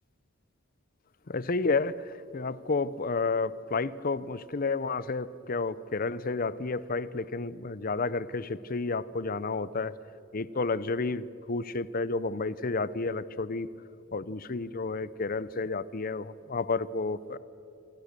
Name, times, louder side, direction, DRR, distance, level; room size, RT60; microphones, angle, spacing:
voice 1, 1.3-10.0 10.3-13.7 14.1-17.4, left 3 dB, 45° left, 18 dB, 0.7 m, -31 dB
27.0 x 25.0 x 6.8 m, 2.8 s
head